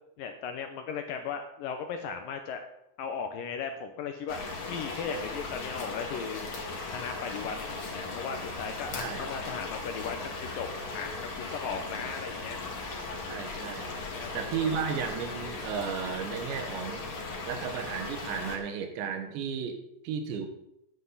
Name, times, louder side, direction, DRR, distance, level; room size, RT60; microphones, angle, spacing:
voice 1, 0.2-2.7 3.0-6.5 6.9-10.7 10.9-12.6 14.0-14.3 14.6-14.7, left 6 dB, 75° left, 6 dB, 2.0 m, -37 dB
sound 1, 4.3-18.6, left 3 dB, 45° left, 1.7 m, -38 dB
voice 2, 8.9-9.5 11.7-11.8 13.3-13.9 14.3-17.1 17.5-20.5, right 7 dB, 85° right, 5 dB, 3.5 m, -34 dB
sound 2, 10.6-16.0, equal, 25° right, 5.4 m, -55 dB
14.0 x 9.8 x 4.0 m, 0.81 s
omnidirectional pair, 5.1 m